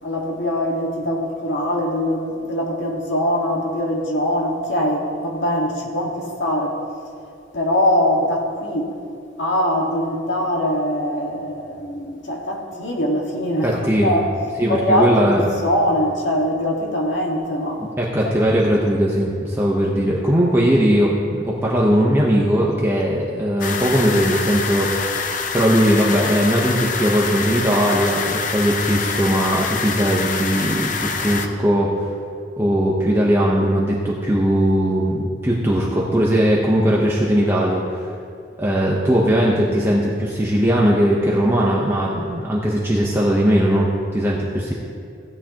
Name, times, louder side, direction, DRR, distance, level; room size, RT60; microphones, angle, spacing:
voice 1, 0.0-6.8 7.5-9.0 9.4-14.3 14.7-17.9 18.2-18.4, left 1 dB, 70° left, -1 dB, 1.8 m, -22 dB
voice 2, 13.6-14.2 14.6-15.5 18.0-25.2 25.5-32.1 32.6-38.1 38.6-44.7, equal, 15° right, -4 dB, 0.9 m, -19 dB
sound 1, 23.6-31.5, left 5 dB, 45° left, 0.6 m, -25 dB
16.0 x 9.7 x 2.9 m, 2.5 s
head